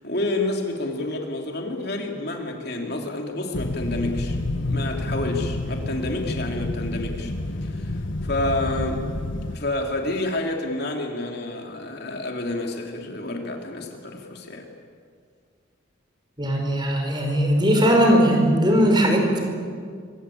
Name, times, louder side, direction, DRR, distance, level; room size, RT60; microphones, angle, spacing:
voice 1, 0.0-7.3 7.6-7.9 8.2-9.1 9.5-14.7, left 2 dB, 55° left, 2 dB, 3.3 m, -29 dB
sound 1, 3.5-9.6, left 2 dB, 75° left, 1.7 m, -29 dB
voice 2, 16.4-19.4, equal, 25° right, 3 dB, 5.1 m, -19 dB
26.0 x 25.0 x 8.8 m, 2.1 s
head